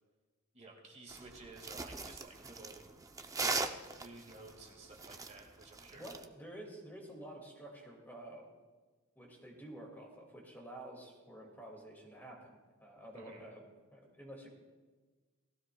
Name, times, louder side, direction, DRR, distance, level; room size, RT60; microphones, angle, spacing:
voice 1, 0.5-2.8 3.4-6.0 13.1-13.5, right 2 dB, 30° right, 1 dB, 1.9 m, -53 dB
sound 1, 1.1-6.2, right 3 dB, 15° right, 0.5 m, -40 dB
voice 2, 6.0-8.5 9.2-14.5, right 1 dB, 10° left, -1 dB, 2.1 m, -50 dB
18.0 x 15.5 x 2.3 m, 1.4 s
head